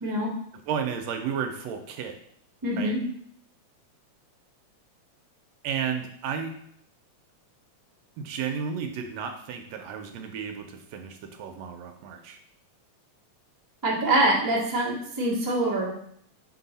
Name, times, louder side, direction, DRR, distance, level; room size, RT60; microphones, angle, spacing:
voice 1, 0.0-0.3 2.6-3.0 13.8-15.9, right 1 dB, 30° right, -5 dB, 0.3 m, -24 dB
voice 2, 0.7-2.2 2.8-2.9 5.6-6.5 8.2-12.4, right 7 dB, 80° right, 5 dB, 1.7 m, -33 dB
6.0 x 4.7 x 4.0 m, 0.68 s
omnidirectional pair, 3.3 m